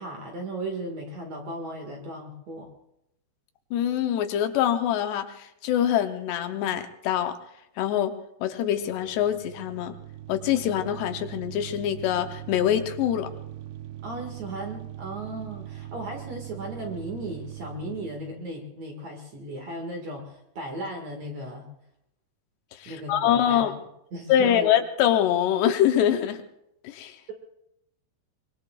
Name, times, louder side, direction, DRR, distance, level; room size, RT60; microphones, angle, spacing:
voice 1, 0.0-2.7 14.0-21.7 22.9-23.7 24.1-24.7, right 1 dB, 50° right, 2 dB, 2.5 m, -36 dB
voice 2, 3.7-7.4 7.8-8.1 8.4-9.9 10.3-13.3 22.8-23.8 24.3-26.4 26.8-27.2, left 10 dB, 80° left, 7 dB, 2.9 m, -24 dB
sound 1, 8.6-18.5, right 12 dB, 85° right, 2.0 m, -41 dB
24.0 x 22.5 x 2.4 m, 0.82 s
omnidirectional pair, 5.0 m